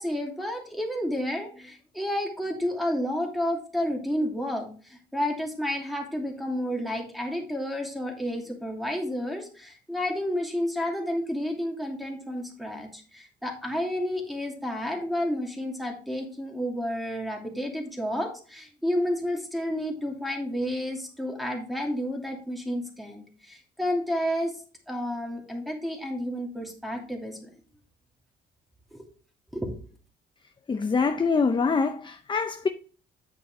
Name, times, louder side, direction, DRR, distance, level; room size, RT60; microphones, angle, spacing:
voice 1, 0.0-24.5 24.9-27.5 28.9-29.1 29.5-29.7, equal, ahead, 2.6 m, -31 dB
voice 2, 30.7-32.7, left 4 dB, 25° left, 0.6 m, -24 dB
8.5 x 6.4 x 3.2 m
cardioid pair, 90°, 20 cm